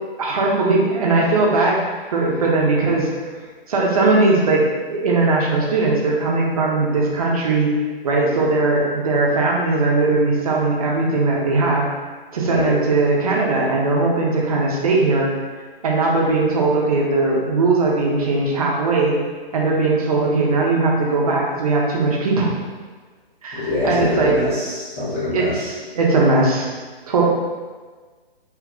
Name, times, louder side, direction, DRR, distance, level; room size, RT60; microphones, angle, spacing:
voice 1, 0.2-1.8 2.1-3.1 3.7-7.7 8.0-11.9 12.3-15.3 15.8-19.2 19.5-22.5 23.4-24.4 25.3-26.7 27.1-27.2, right 3 dB, 40° right, -3 dB, 0.7 m, -19 dB
voice 2, 23.5-25.7, left 2 dB, 25° left, -11 dB, 1.0 m, -24 dB
2.9 x 2.5 x 3.4 m, 1.4 s
figure-of-eight pair, 135°, 30 cm